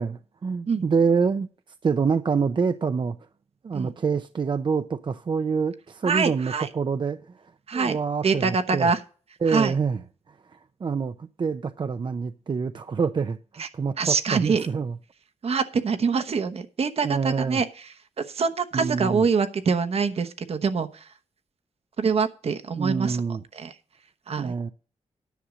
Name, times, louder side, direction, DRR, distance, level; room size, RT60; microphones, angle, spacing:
voice 1, 0.0-1.5 1.8-3.2 3.6-8.9 9.4-10.0 10.3-15.0 17.0-17.6 18.7-19.3 22.8-23.4 24.4-24.7, right 5 dB, 45° right, 0.5 m, -26 dB
voice 2, 6.0-6.7 7.7-8.0 8.2-9.0 9.5-9.7 13.6-13.7 14.0-14.7 15.4-17.6 18.3-21.0 22.0-23.2 23.5-23.7 24.3-24.5, right 5 dB, 65° right, 1.1 m, -24 dB
10.5 x 6.2 x 6.2 m
cardioid pair, 80°, 11 cm